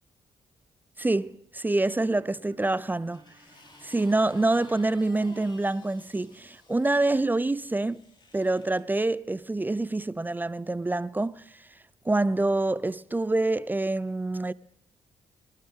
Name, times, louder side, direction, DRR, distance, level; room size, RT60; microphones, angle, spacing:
voice 1, 1.0-3.2 3.8-8.0 8.3-11.4 12.1-14.5, right 2 dB, 15° right, 0.5 m, -26 dB
sound 1, 1.8-5.7, equal, 30° right, 4.5 m, -60 dB
sound 2, 2.7-7.0 7.8-8.8 9.8-9.9, left 2 dB, 40° left, 4.6 m, -55 dB
23.5 x 12.0 x 3.7 m
supercardioid pair, 60°, 12 cm